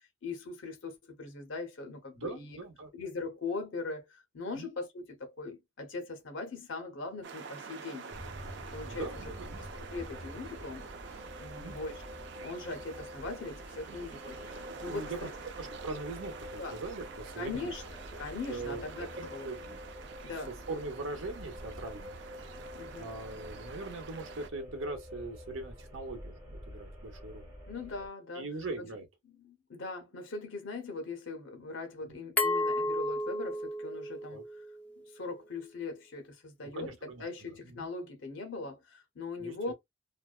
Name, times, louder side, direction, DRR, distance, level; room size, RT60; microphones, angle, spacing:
voice 1, 0.2-2.6 2.9-8.1 8.7-9.1 9.6-12.0 12.4-15.3 16.6-16.8 17.4-17.8 18.2-19.5 20.2-20.5 22.7-23.1 27.7-28.5 28.8-28.9 29.4-34.6 35.1-39.7, left 3 dB, 70° left, 0.7 m, -40 dB
voice 2, 2.2-2.9 4.5-4.7 8.8-9.7 11.6-11.8 14.9-15.3 15.6-17.7 18.5-18.8 19.1-22.2 23.0-27.5 28.3-29.1 32.0-32.2 34.3-34.4 36.6-37.9 39.4-39.7, right 3 dB, 85° right, 0.8 m, -41 dB
sound 1, 7.2-24.5, right 5 dB, 65° right, 0.4 m, -47 dB
sound 2, 8.1-28.1, left 1 dB, 20° right, 0.7 m, -47 dB
Glass, 32.4-35.1, left 1 dB, 5° left, 0.3 m, -32 dB
2.6 x 2.2 x 2.3 m
head